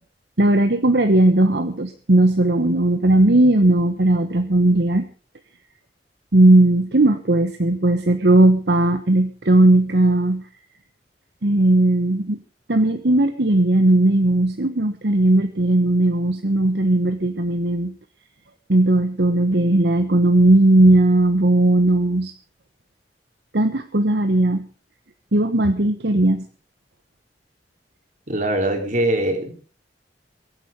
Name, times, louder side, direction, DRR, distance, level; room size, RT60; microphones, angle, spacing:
voice 1, 0.4-5.0 6.3-10.4 11.4-12.4 12.7-17.9 18.7-22.3 23.5-24.6 25.3-26.4, right 1 dB, 65° right, 8 dB, 1.2 m, -17 dB
voice 2, 28.3-29.5, right 1 dB, 45° right, 4 dB, 3.9 m, -22 dB
23.0 x 9.2 x 5.2 m, 0.38 s
head